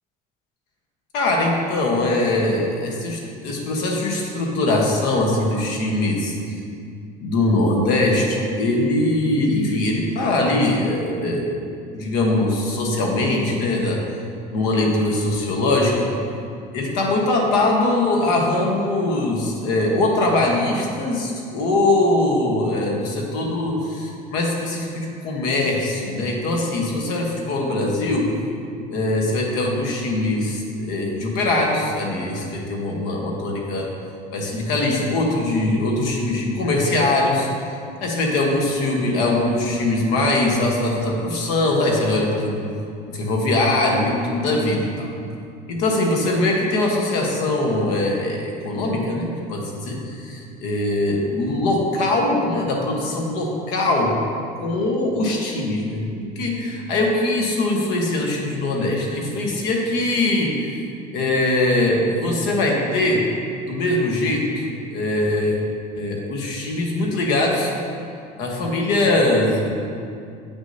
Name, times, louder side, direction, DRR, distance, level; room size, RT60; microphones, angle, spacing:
voice 1, 1.1-6.3 7.2-11.6 11.9-14.0 14.5-16.1 16.7-28.3 28.9-33.9 34.3-37.5 38.0-42.6 43.1-45.1 45.7-54.2 54.6-60.8 61.1-63.2 63.7-64.6 64.9-65.6 66.0-67.7 68.4-69.7, left 2 dB, 65° left, 0 dB, 1.2 m, -21 dB
8.2 x 6.3 x 2.8 m, 2.4 s
cardioid pair, 175°, 18 cm